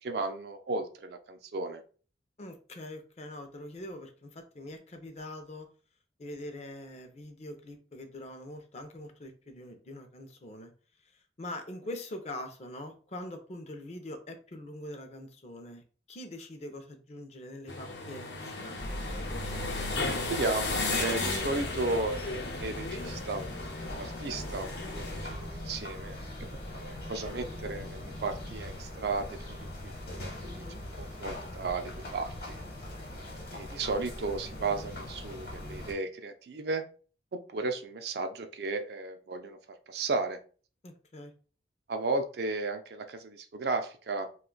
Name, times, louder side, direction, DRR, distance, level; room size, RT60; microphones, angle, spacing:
voice 1, 0.0-1.8 20.3-23.4 23.8-26.5 26.7-30.6 31.0-32.3 33.5-36.8 37.3-39.6 39.9-40.4 41.9-44.3, right 3 dB, 65° right, 7 dB, 0.4 m, -34 dB
voice 2, 2.4-5.7 6.2-10.7 11.1-15.8 16.1-18.8 30.4-30.8 40.8-41.3, left 1 dB, 35° left, 6 dB, 0.5 m, -43 dB
sound 1, 17.7-25.3, left 3 dB, 80° left, 0.8 m, -35 dB
sound 2, 18.8-35.9, left 1 dB, 55° left, 1.0 m, -40 dB
2.5 x 2.3 x 3.8 m, 0.39 s
head